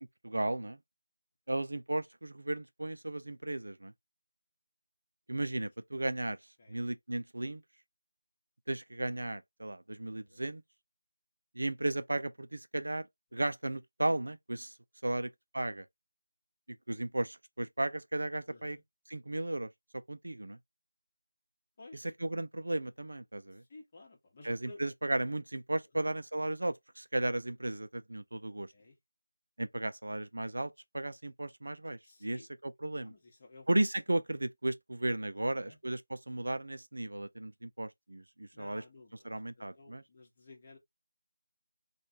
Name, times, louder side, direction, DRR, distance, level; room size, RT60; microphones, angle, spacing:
voice 1, 0.2-0.8 1.5-3.9 5.3-6.4 6.7-7.6 8.7-10.6 11.6-13.1 13.3-14.7 15.0-15.9 16.9-18.8 19.1-19.7 20.1-20.6 22.2-23.6 24.4-28.7 29.6-33.1 33.7-38.8 39.2-40.0, right 1 dB, 60° right, 0.4 m, -35 dB
voice 2, 18.5-18.8 21.8-22.1 23.7-24.8 25.9-26.1 28.7-29.0 32.0-32.5 33.0-33.7 35.3-35.8 38.5-40.8, left 2 dB, 25° left, 1.0 m, -55 dB
3.2 x 2.3 x 2.8 m
figure-of-eight pair, 165°, 0 cm